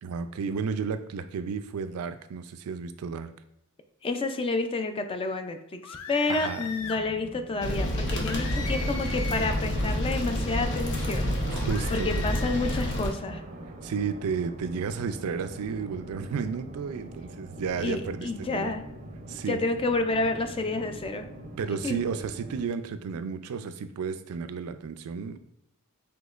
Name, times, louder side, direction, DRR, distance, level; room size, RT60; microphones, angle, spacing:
voice 1, 0.0-3.3 6.3-6.7 11.5-12.2 13.8-18.7 19.3-19.6 21.6-25.4, right 6 dB, 85° right, 10 dB, 0.4 m, -32 dB
voice 2, 4.0-11.4 11.9-13.4 17.8-18.8 19.5-21.3 21.8-22.0, left 3 dB, 25° left, 7 dB, 0.4 m, -29 dB
sound 1, 5.8-7.0 8.2-9.7 11.6-12.9, left 5 dB, 85° left, 0.5 m, -39 dB
sound 2, 6.8-22.7, right 1 dB, 35° right, 0.5 m, -43 dB
sound 3, 7.6-13.1, equal, 60° left, 0.8 m, -29 dB
6.1 x 2.9 x 2.4 m, 0.77 s
head